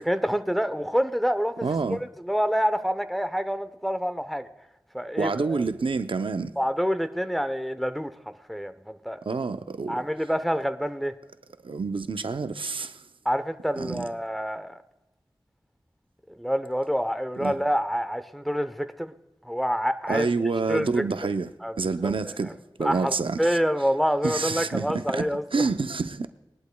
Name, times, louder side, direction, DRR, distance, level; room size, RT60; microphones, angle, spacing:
voice 1, 0.1-4.5 4.9-5.6 6.6-8.1 8.5-9.2 9.9-11.1 13.2-14.8 16.4-19.1 19.4-20.3 20.7-21.0 21.6-22.1 22.8-25.7, equal, ahead, 0.8 m, -27 dB
voice 2, 1.6-2.0 5.2-6.5 9.2-10.0 11.6-13.0 13.8-14.0 17.4-17.5 20.1-21.5 21.8-23.6 24.2-26.3, right 4 dB, 80° right, 0.6 m, -28 dB
20.5 x 11.5 x 2.3 m
wide cardioid pair, 45°, 9 cm